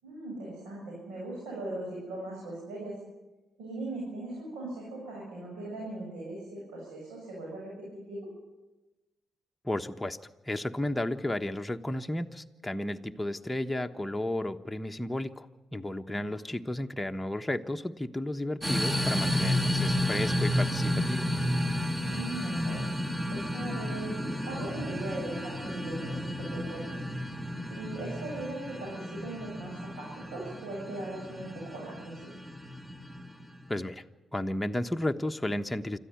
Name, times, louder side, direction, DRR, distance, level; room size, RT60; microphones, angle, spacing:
voice 1, 0.0-2.9 3.6-8.3 16.1-16.3 22.0-22.8 23.3-27.0 27.7-32.3, right 2 dB, 80° right, -3 dB, 7.3 m, -39 dB
voice 2, 9.6-10.2 10.5-15.5 15.7-21.3 33.7-34.0 34.3-36.0, left 1 dB, 10° left, 5 dB, 1.2 m, -33 dB
sound 1, 18.6-33.7, left 1 dB, 15° right, 2.9 m, -32 dB
26.0 x 13.5 x 9.6 m, 1.1 s
supercardioid pair, 50°, 0 cm